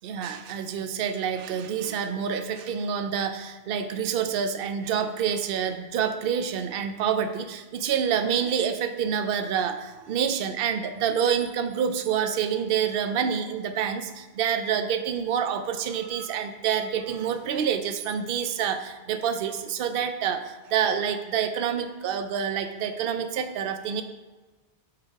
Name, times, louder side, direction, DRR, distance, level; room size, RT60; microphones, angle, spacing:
voice 1, 0.0-24.0, right 8 dB, 65° right, 8 dB, 0.7 m, -27 dB
5.6 x 4.0 x 4.5 m, 1.2 s
omnidirectional pair, 1.1 m